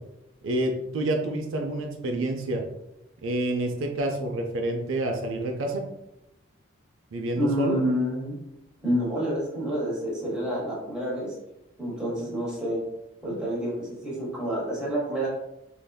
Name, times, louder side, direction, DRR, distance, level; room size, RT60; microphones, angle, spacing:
voice 1, 0.4-2.6 3.2-5.8 7.1-7.8, right 1 dB, 75° right, 3 dB, 0.4 m, -28 dB
voice 2, 7.4-8.4 8.8-11.4 11.8-12.8 13.2-15.3, equal, 5° right, -6 dB, 0.9 m, -28 dB
3.4 x 2.6 x 2.2 m, 0.87 s
head